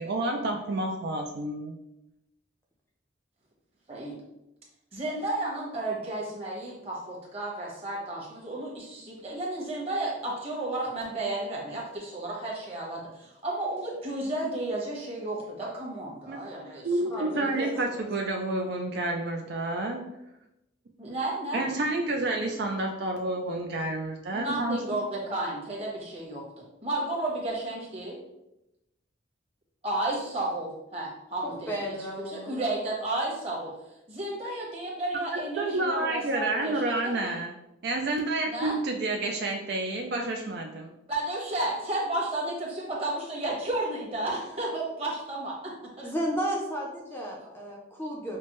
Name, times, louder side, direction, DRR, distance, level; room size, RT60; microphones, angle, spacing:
voice 1, 0.0-1.7 16.3-16.4 16.8-20.0 21.5-24.8 35.6-37.5 37.8-40.9, right 2 dB, 55° right, 2 dB, 0.4 m, -29 dB
voice 2, 4.9-16.9 17.2-17.7 21.0-21.6 24.3-28.2 29.8-33.7 34.1-37.2 38.5-38.7 41.1-45.5, right 2 dB, 30° right, -4 dB, 1.1 m, -32 dB
voice 3, 17.0-18.1 31.7-32.7 46.0-48.4, equal, 10° left, -2 dB, 0.5 m, -34 dB
5.8 x 2.1 x 3.0 m, 0.89 s
head